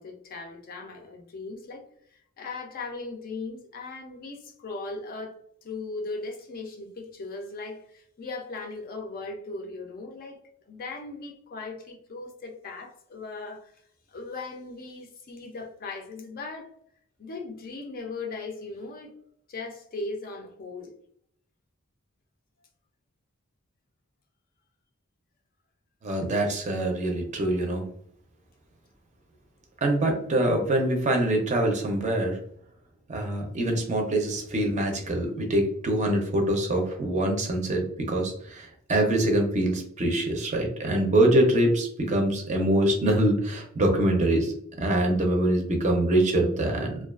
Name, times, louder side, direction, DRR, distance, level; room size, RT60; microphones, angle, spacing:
voice 1, 0.0-10.4 10.7-13.7 14.1-16.8 17.2-19.1 19.5-20.9, left 3 dB, 45° left, 0.4 m, -38 dB
voice 2, 26.0-27.8 29.8-32.4 33.1-44.5 44.8-47.0, right 1 dB, 35° right, 0.5 m, -24 dB
2.3 x 2.3 x 2.3 m
head